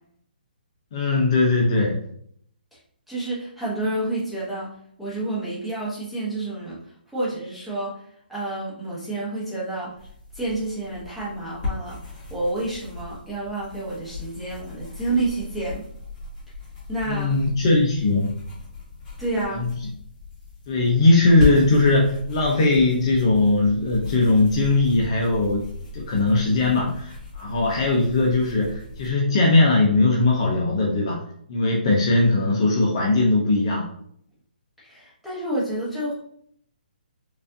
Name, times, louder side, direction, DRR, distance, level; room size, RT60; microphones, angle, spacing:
voice 1, 0.9-2.0 17.1-18.3 19.5-19.7 20.7-25.7 25.9-31.2 31.5-33.9, left 2 dB, 35° left, -2 dB, 0.6 m, -19 dB
voice 2, 3.1-10.0 10.3-15.8 16.9-17.3 19.2-19.6 34.8-36.1, right 2 dB, ahead, -9 dB, 1.0 m, -29 dB
sound 1, 10.0-29.1, left 3 dB, 15° left, 1.5 m, -36 dB
4.7 x 2.6 x 2.6 m, 0.66 s
hypercardioid pair, 165°, 5 cm